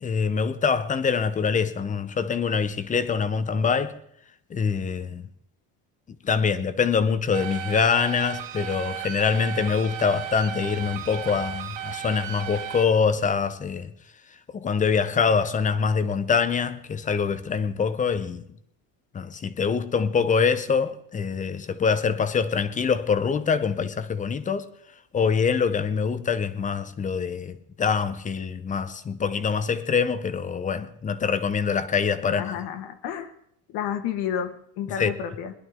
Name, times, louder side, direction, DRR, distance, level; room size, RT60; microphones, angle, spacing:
voice 1, 0.0-3.9 4.5-5.2 6.2-13.9 14.5-18.4 19.1-24.7 25.1-32.5 35.0-35.1, left 6 dB, 20° left, 0.6 m, -24 dB
sound 1, 7.3-12.9, right 10 dB, 50° right, 2.5 m, -35 dB
voice 2, 32.2-33.3 33.7-35.5, left 9 dB, 60° left, 1.6 m, -31 dB
21.5 x 11.0 x 3.6 m
cardioid pair, 155°, 42 cm